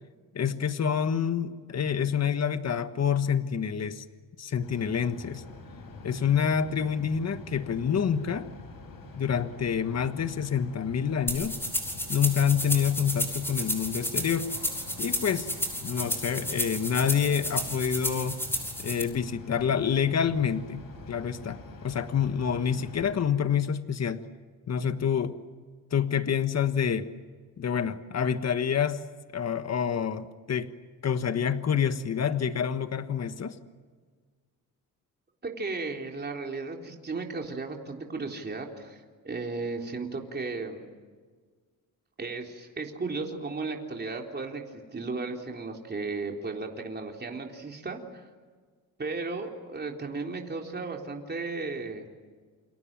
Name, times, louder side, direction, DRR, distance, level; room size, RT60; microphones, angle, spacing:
voice 1, 0.3-4.0 4.4-5.4 6.0-8.5 9.2-11.6 12.1-14.5 15.0-15.5 15.8-18.4 18.8-24.2 24.7-25.4 25.9-27.1 27.6-29.0 29.3-30.7 31.0-33.6, left 7 dB, 45° left, 10 dB, 1.5 m, -27 dB
sound 1, 4.6-23.1, left 3 dB, 70° left, 7.9 m, -45 dB
sound 2, 11.3-19.0, equal, 5° left, 6.5 m, -32 dB
voice 2, 35.4-40.9 42.2-48.2 49.0-52.1, right 3 dB, 30° right, 1 dB, 3.8 m, -35 dB
29.0 x 26.5 x 7.6 m, 1.5 s
cardioid pair, 110°, 35 cm